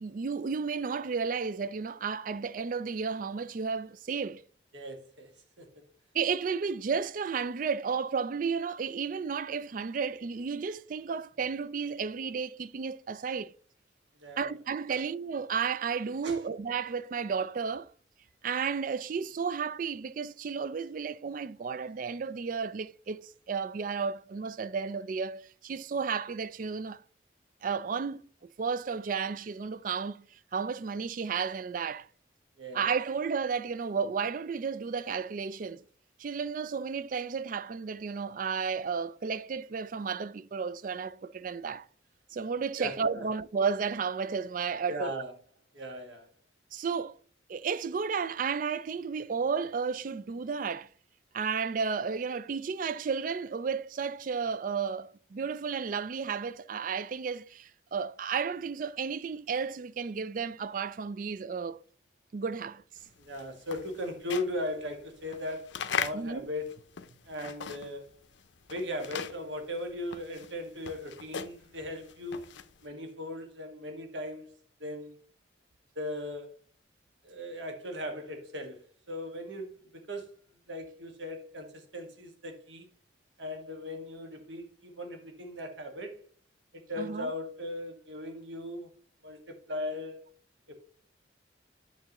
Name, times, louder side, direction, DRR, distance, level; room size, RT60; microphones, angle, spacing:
voice 1, 0.0-4.4 6.1-13.5 14.4-17.9 18.4-27.0 27.6-32.1 32.7-35.8 36.2-41.9 42.3-45.1 46.7-47.2 47.5-50.9 51.3-61.8 62.3-62.8 66.1-66.5 87.0-87.3, right 5 dB, 45° right, 0.3 m, -33 dB
voice 2, 4.7-5.3 5.6-5.7 14.2-14.5 14.9-15.0 16.2-16.4 32.6-32.8 42.8-43.3 44.9-45.3 45.7-46.3 63.2-66.7 67.3-68.2 68.7-74.5 74.8-75.2 76.0-76.5 77.2-80.4 80.7-82.9 83.4-86.2 86.7-88.9 89.2-90.2 90.7-90.8, left 1 dB, 75° right, 1.7 m, -38 dB
sound 1, 63.1-68.1 68.4-72.8, left 7 dB, 75° left, 0.6 m, -39 dB
9.0 x 6.8 x 3.0 m
head